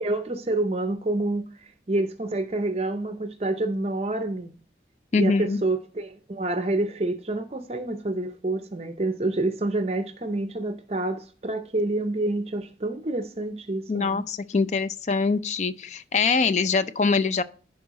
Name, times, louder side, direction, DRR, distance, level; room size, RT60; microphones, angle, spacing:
voice 1, 0.0-4.5 5.2-14.2, right 2 dB, 35° right, 0.6 m, -28 dB
voice 2, 5.1-5.6 13.9-17.4, left 4 dB, 40° left, 0.4 m, -23 dB
11.0 x 4.8 x 4.1 m
head